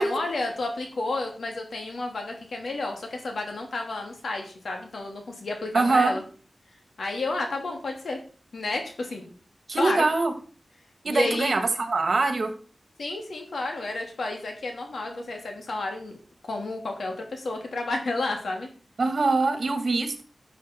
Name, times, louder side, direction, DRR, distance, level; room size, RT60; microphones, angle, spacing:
voice 1, 0.0-6.2 7.0-8.2 8.5-9.3 9.7-10.0 11.1-11.5 13.0-16.2 16.4-18.7, left 2 dB, 90° left, 2 dB, 2.9 m, -31 dB
voice 2, 5.7-6.1 9.7-10.3 11.0-12.5 19.0-20.2, right 3 dB, 65° right, 7 dB, 2.0 m, -23 dB
12.0 x 7.4 x 4.6 m, 0.41 s
wide cardioid pair, 90°, 0 cm